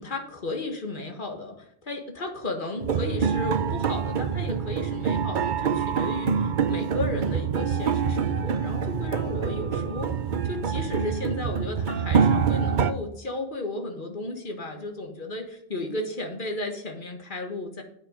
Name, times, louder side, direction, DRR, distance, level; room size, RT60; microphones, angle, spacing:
voice 1, 0.0-10.1 10.4-17.8, left 2 dB, 50° left, 4 dB, 1.9 m, -34 dB
sound 1, 2.8-12.9, right 6 dB, 50° right, 0.8 m, -26 dB
9.2 x 8.2 x 5.2 m, 0.71 s
omnidirectional pair, 1.1 m